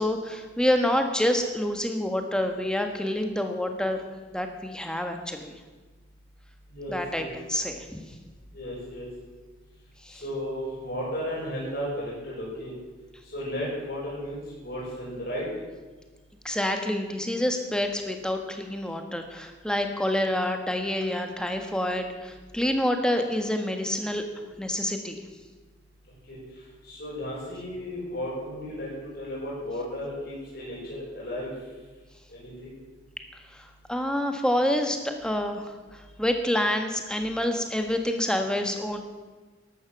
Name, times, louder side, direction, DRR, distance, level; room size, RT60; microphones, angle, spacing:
voice 1, 0.0-4.0 4.3-5.5 6.9-7.9 10.0-10.2 16.4-24.2 24.6-25.2 33.5-39.0, left 1 dB, 5° left, 5 dB, 1.4 m, -27 dB
voice 2, 6.7-7.3 8.5-9.1 10.2-12.7 13.3-15.4 26.3-26.4 26.8-30.8 31.1-31.5 32.3-32.7, equal, 50° left, -5 dB, 6.3 m, -34 dB
13.0 x 12.0 x 7.3 m, 1.3 s
head